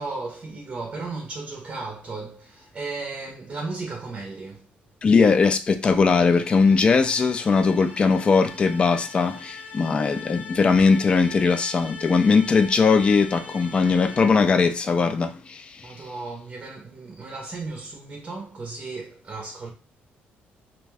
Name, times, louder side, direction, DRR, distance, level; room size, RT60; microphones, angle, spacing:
voice 1, 0.0-4.7 15.8-19.7, right 3 dB, 30° right, 0.6 m, -35 dB
voice 2, 5.0-15.9, left 4 dB, 25° left, 0.3 m, -20 dB
sound 1, 6.1-14.6, left 5 dB, 45° left, 0.8 m, -41 dB
2.5 x 2.2 x 3.3 m
cardioid pair, 135°, 4 cm